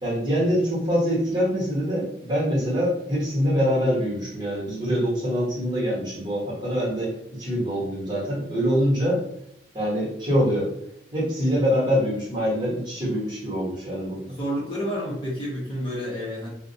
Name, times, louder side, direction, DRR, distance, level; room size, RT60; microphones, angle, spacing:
voice 1, 0.0-9.2 9.7-10.7 11.1-14.2, equal, 25° right, -7 dB, 1.0 m, -24 dB
voice 2, 14.3-16.5, equal, 30° left, -6 dB, 0.7 m, -29 dB
2.3 x 2.0 x 2.6 m, 0.76 s
head